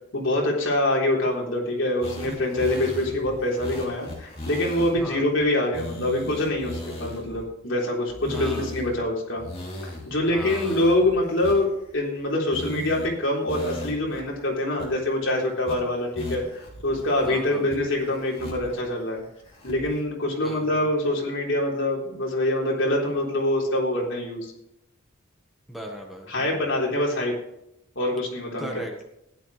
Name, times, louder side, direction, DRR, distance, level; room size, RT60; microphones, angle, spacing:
voice 1, 0.1-9.4 9.8-19.2 19.6-24.5 26.3-27.4 28.0-28.7, left 1 dB, 60° left, -2 dB, 3.9 m, -25 dB
sound 1, 2.0-5.0 5.4-5.5 5.7-7.4 8.1-9.0 9.4-12.2 12.5-13.1 13.5-14.2 14.5-14.6 14.8-15.3 15.7-15.8 16.2-17.3 17.7-18.8 19.2-20.0, left 1 dB, 25° left, 3.2 m, -37 dB
voice 2, 8.3-8.7 10.2-10.8 17.2-17.7 20.4-20.9 25.7-26.6 28.6-29.0, equal, ahead, 0 dB, 1.4 m, -37 dB
15.5 x 11.0 x 3.3 m, 0.80 s
head